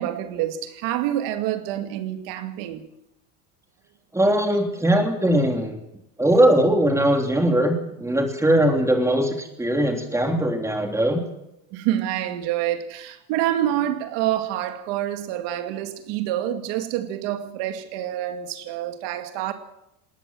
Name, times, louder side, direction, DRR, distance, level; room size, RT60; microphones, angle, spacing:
voice 1, 0.0-2.8 11.7-19.5, right 12 dB, 60° right, 2.3 m, -27 dB
voice 2, 4.1-5.8 6.2-11.2, right 1 dB, 5° right, 3.3 m, -20 dB
19.5 x 19.0 x 7.6 m
cardioid pair, 145°, 46 cm